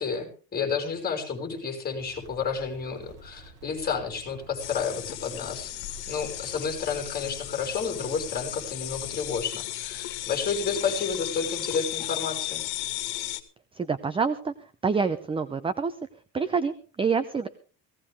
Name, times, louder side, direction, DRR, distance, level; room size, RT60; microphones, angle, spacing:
voice 1, 0.0-5.7 6.1-12.6, left 5 dB, 20° left, 3 dB, 6.0 m, -31 dB
sound 1, 2.0-9.4, right 2 dB, 45° right, 6.5 m, -50 dB
sound 2, 4.6-13.4, left 16 dB, 60° left, 2.2 m, -35 dB
voice 2, 13.8-14.5 14.8-15.9 16.3-17.5, right 5 dB, 10° right, 12 dB, 0.7 m, -27 dB
18.0 x 17.0 x 3.6 m, 0.38 s
cardioid pair, 155°, 43 cm